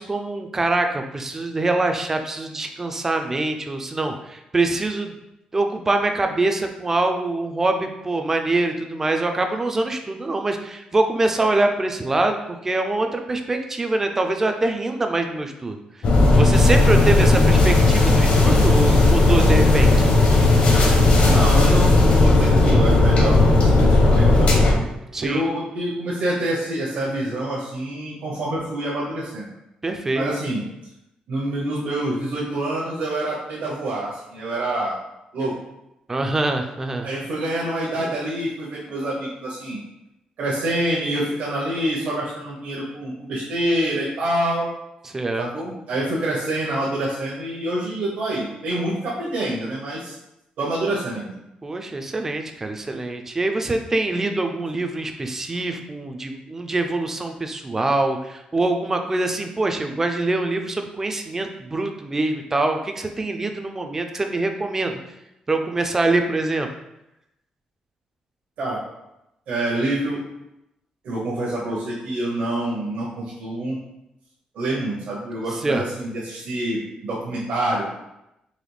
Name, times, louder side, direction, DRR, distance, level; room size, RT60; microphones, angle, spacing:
voice 1, 0.0-5.1 5.5-15.8 16.3-19.9 25.1-25.5 29.8-30.2 36.1-37.1 45.1-45.5 51.6-65.0 65.5-66.7 75.6-75.8, right 2 dB, 15° right, 5 dB, 0.3 m, -24 dB
sound 1, 16.0-24.7, left 2 dB, 50° left, 0.7 m, -15 dB
sound 2, 16.5-21.5, left 1 dB, 90° left, 1.2 m, -32 dB
voice 2, 17.2-17.5 21.2-24.5 25.2-29.5 30.1-30.6 31.3-35.0 35.3-35.5 37.0-39.8 40.4-44.7 45.4-50.1 50.6-51.3 68.6-68.8 69.5-70.2 71.0-73.8 74.5-77.9, right 1 dB, 70° right, -6 dB, 0.8 m, -26 dB
4.0 x 2.8 x 3.2 m, 0.88 s
wide cardioid pair, 175°, 3 cm